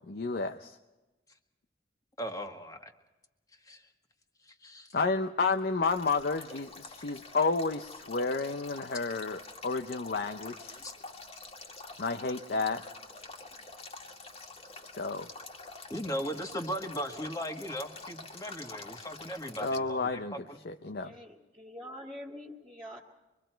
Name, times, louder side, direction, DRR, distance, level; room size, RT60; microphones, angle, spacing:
voice 1, 0.1-0.8 4.9-10.8 12.0-12.8 15.0-15.3 19.6-21.1, left 4 dB, 60° left, 6 dB, 0.7 m, -31 dB
voice 2, 2.2-2.9 3.7-3.8 4.6-4.9 10.8-10.9 15.9-20.6, equal, 20° left, 4 dB, 1.7 m, -37 dB
Male speech man speaking / Stream / Trickle dribble, 5.8-19.8, left 3 dB, 35° left, 2.0 m, -47 dB
voice 3, 21.0-23.0, left 1 dB, 20° right, -3 dB, 2.0 m, -45 dB
25.0 x 23.0 x 4.5 m, 1.1 s
head